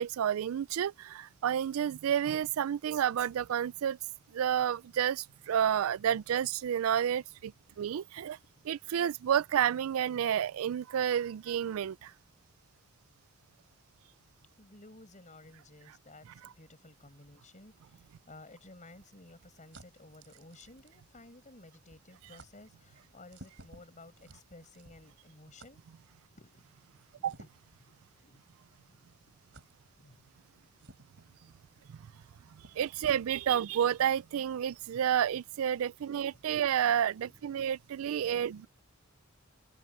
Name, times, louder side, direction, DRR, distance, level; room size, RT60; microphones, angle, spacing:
voice 1, 0.0-4.0 4.3-7.5 7.8-8.4 8.6-12.1 27.2-27.3 31.9-32.0 32.5-38.7, right 9 dB, 85° right, 0.3 m, -30 dB
voice 2, 7.4-8.7 14.6-25.8 26.3-26.7 27.1-27.5 27.8-28.5 28.8-29.1 30.0-30.3 30.7-30.9 31.8-31.9 37.2-37.7 38.5-38.7, left 2 dB, 35° left, 5.9 m, -55 dB
sound 1, 18.1-21.6 21.9-22.1 22.3-22.5 23.3-25.2 25.6-25.7 27.2-27.8 28.5-28.6 29.5-29.7 30.8-31.3 32.2-32.3 32.6-33.2, right 2 dB, 65° right, 4.1 m, -56 dB
head